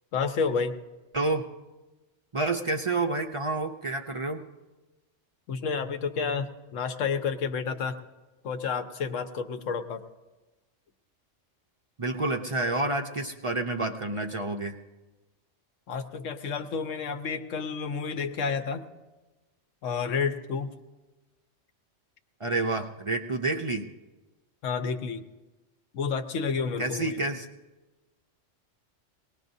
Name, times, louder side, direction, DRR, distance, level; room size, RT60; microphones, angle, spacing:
voice 1, 0.1-0.7 5.5-8.0 8.4-10.0 15.9-18.9 19.8-20.7 24.6-25.2 25.9-27.2, left 5 dB, 80° left, 8 dB, 1.2 m, -30 dB
voice 2, 1.1-1.5 2.3-4.5 12.0-14.7 22.4-23.9 26.8-27.5, right 2 dB, 40° right, 4 dB, 0.4 m, -29 dB
22.5 x 19.0 x 2.7 m, 1.2 s
omnidirectional pair, 1.3 m